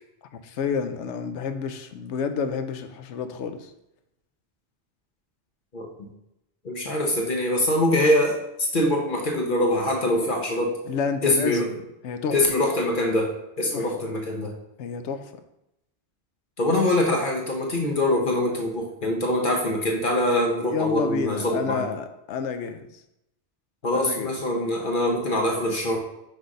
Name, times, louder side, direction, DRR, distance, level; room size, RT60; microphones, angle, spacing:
voice 1, 0.3-3.7 10.9-11.8 12.0-12.4 13.7-14.1 14.8-15.4 20.7-23.0 23.9-24.3, left 5 dB, 90° left, 8 dB, 1.0 m, -30 dB
voice 2, 6.6-10.8 11.2-11.7 12.3-14.5 16.6-21.8 23.8-26.0, left 1 dB, 50° left, 1 dB, 1.0 m, -24 dB
6.1 x 3.3 x 5.2 m, 0.86 s
omnidirectional pair, 1.2 m